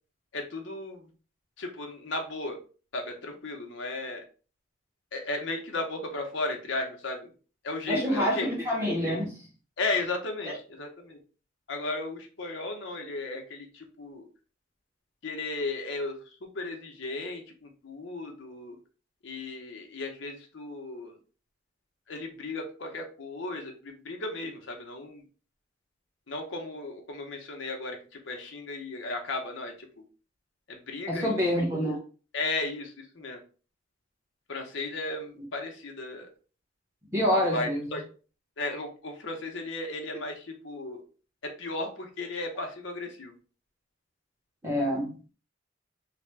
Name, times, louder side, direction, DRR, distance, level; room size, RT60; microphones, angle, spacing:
voice 1, 0.3-1.1 1.6-2.6 2.9-4.2 5.1-7.3 7.6-8.5 9.8-11.2 11.7-14.3 15.2-16.2 16.5-18.8 19.2-21.2 22.1-25.2 26.3-30.0 30.7-31.5 32.3-33.4 34.5-36.3 37.3-38.0 38.6-41.0 41.4-43.3, left 2 dB, 70° left, 0.7 m, -35 dB
voice 2, 7.9-9.4 31.1-32.0 37.1-38.0 44.6-45.3, equal, 15° right, 0.9 m, -27 dB
3.3 x 2.1 x 3.2 m
head